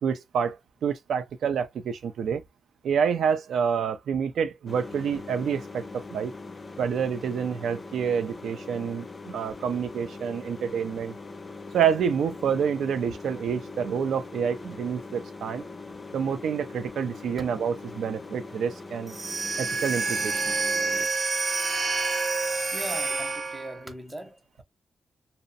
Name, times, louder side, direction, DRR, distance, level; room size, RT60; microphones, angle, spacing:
voice 1, 0.0-2.4 2.8-6.3 6.8-11.2 11.7-15.6 16.1-19.1 19.6-20.5, right 7 dB, 85° right, 0.3 m, -28 dB
sound 1, 4.7-21.1, left 3 dB, 30° left, 0.4 m, -42 dB
sound 2, 19.1-23.8, right 3 dB, 50° right, 0.7 m, -28 dB
voice 2, 22.7-24.6, right 1 dB, 15° right, 0.7 m, -39 dB
2.6 x 2.0 x 2.5 m
cardioid pair, 80°, 0 cm